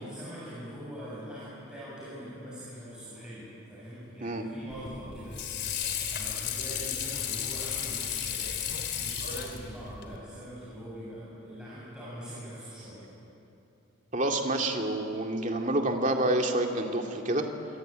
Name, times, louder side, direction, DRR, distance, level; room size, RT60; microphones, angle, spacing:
voice 1, 0.0-5.4 6.1-8.5 9.0-13.0, equal, 5° right, -10 dB, 7.7 m, -43 dB
Water / Sink (filling or washing), 4.7-10.2, left 8 dB, 55° left, 3.1 m, -34 dB
voice 2, 14.1-17.4, right 1 dB, 35° right, 2 dB, 2.4 m, -28 dB
26.5 x 22.5 x 9.0 m, 2.8 s
head